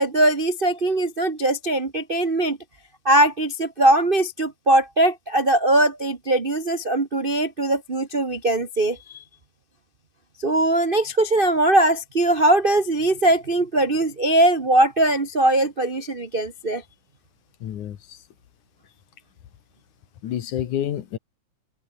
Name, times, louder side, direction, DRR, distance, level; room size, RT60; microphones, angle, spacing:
voice 1, 0.0-2.6 3.0-9.2 10.4-16.8, right 1 dB, 50° right, 0.6 m, -20 dB
voice 2, 17.6-18.2 20.2-21.2, left 11 dB, 80° left, 3.0 m, -29 dB
omnidirectional pair, 3.5 m